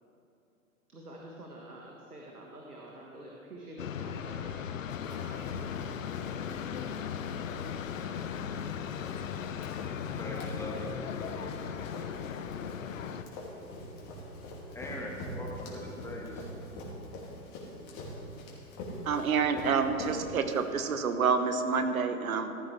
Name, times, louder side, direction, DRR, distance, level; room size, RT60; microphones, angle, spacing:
voice 1, 0.9-4.8 5.0-6.3, right 1 dB, 85° right, -2 dB, 1.6 m, -48 dB
sound 1, 3.8-13.2, left 8 dB, 60° left, 0.8 m, -37 dB
Run, 4.9-21.0, left 1 dB, 35° left, 2.6 m, -45 dB
voice 2, 9.7-11.6 14.7-16.5, left 1 dB, 5° left, -2 dB, 1.7 m, -42 dB
voice 3, 19.0-22.5, right 5 dB, 70° right, 8 dB, 1.1 m, -28 dB
15.0 x 13.0 x 3.4 m, 2.7 s
figure-of-eight pair, 115°, 44 cm